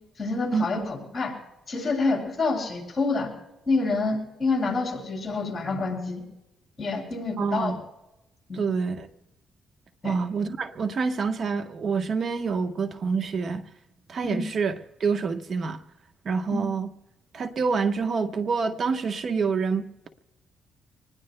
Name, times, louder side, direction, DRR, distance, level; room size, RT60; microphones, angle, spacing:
voice 1, 0.2-1.4 1.7-3.3 3.7-6.2 6.8-7.7 8.5-8.6 10.0-10.2 14.2-14.4 16.5-16.6, left 3 dB, 30° left, 7.3 m, -27 dB
voice 2, 7.4-7.8 8.5-9.1 10.0-13.6 14.1-14.7 15.0-15.8 16.2-16.9 17.3-20.1, right 5 dB, 50° right, 1.0 m, -27 dB
26.5 x 20.0 x 2.2 m
cardioid pair, 90°, 0 cm